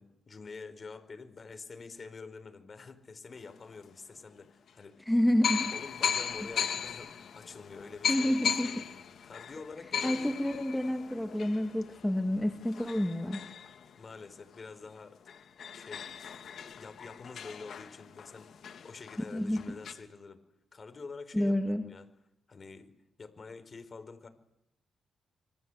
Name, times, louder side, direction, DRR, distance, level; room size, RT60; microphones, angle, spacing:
voice 1, 0.0-5.1 5.7-8.5 9.2-10.3 14.0-15.2 15.7-16.1 16.8-20.4 20.7-22.1 22.5-22.9 23.2-24.3, left 4 dB, 35° left, 8 dB, 4.6 m, -47 dB
sound 1, 3.7-3.8 4.7-4.8 5.4-14.6 15.0-15.1 15.3-19.9, left 7 dB, 65° left, 3.1 m, -37 dB
voice 2, 5.1-5.7 8.1-8.9 10.0-13.4 19.3-19.8 21.3-21.8, left 1 dB, 5° left, 4 dB, 2.2 m, -29 dB
27.5 x 25.0 x 8.2 m, 0.80 s
cardioid pair, 120°, 0 cm